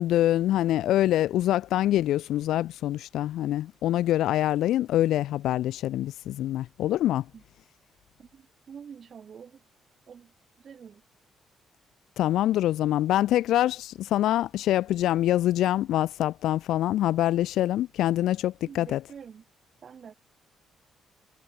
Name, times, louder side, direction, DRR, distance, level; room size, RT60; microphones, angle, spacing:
voice 1, 0.0-7.2 12.2-19.0, left 13 dB, 80° left, 0.4 m, -25 dB
voice 2, 8.2-9.6 10.1-10.3 10.6-11.0 18.6-19.4 19.8-20.1, right 7 dB, 50° right, 3.0 m, -46 dB
cardioid pair, 90°, 0 cm